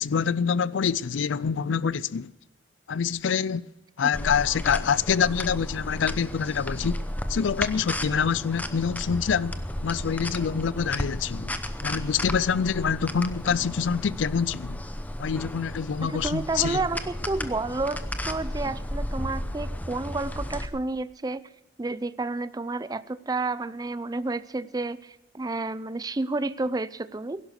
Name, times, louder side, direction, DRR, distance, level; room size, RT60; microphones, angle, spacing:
voice 1, 0.0-2.3 2.9-3.7 4.0-7.0 7.3-11.5 11.8-14.8 15.2-16.8, left 6 dB, 85° left, 0.4 m, -26 dB
sound 1, 4.1-20.7, left 1 dB, 10° left, 0.7 m, -34 dB
voice 2, 16.0-21.4 21.8-27.4, right 3 dB, 20° right, 0.4 m, -30 dB
17.0 x 11.5 x 6.5 m
head